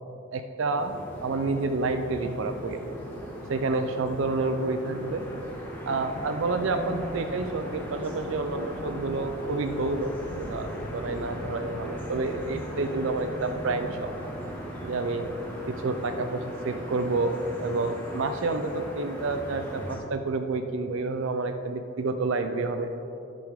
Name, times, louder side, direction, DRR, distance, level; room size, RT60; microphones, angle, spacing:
voice 1, 0.3-2.8 3.5-5.3 5.9-14.1 14.8-15.3 15.7-22.9, right 3 dB, 65° right, 8 dB, 0.5 m, -29 dB
sound 1, 0.7-20.0, equal, 10° left, 1.5 m, -38 dB
10.0 x 8.5 x 3.5 m, 2.9 s
head